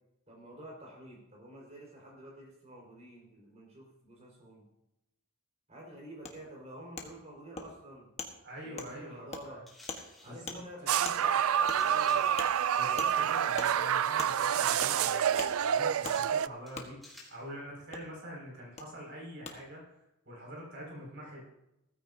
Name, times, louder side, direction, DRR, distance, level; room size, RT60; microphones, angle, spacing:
voice 1, 0.3-4.6 5.7-8.1 8.6-9.6 10.2-12.4, right 1 dB, 30° right, -2 dB, 5.0 m, -49 dB
Wood, 6.2-6.3 7.0-7.1 7.6-7.7 8.2-8.3 8.8-8.9 9.3-9.4 9.9-10.0 10.5-10.6 11.0-11.2 11.7-11.8 12.4-12.5 13.0-13.1 13.6-13.7 14.2-14.3 14.8-14.9 15.4-15.5 16.0-16.2 16.7-16.9 17.9-18.0 18.8-18.9 19.4-19.5, left 4 dB, 30° left, 1.4 m, -40 dB
voice 2, 8.4-9.6 10.2-10.6 12.7-19.8 20.2-21.5, equal, 55° right, -3 dB, 6.2 m, -45 dB
sound 1, 9.7-10.4 11.7-12.4 14.3-15.0 15.6-16.4 16.7-17.4, left 1 dB, ahead, 3.1 m, -54 dB
sound 2, 10.9-16.5, right 9 dB, 75° right, 0.4 m, -28 dB
16.5 x 14.5 x 2.8 m, 0.87 s
head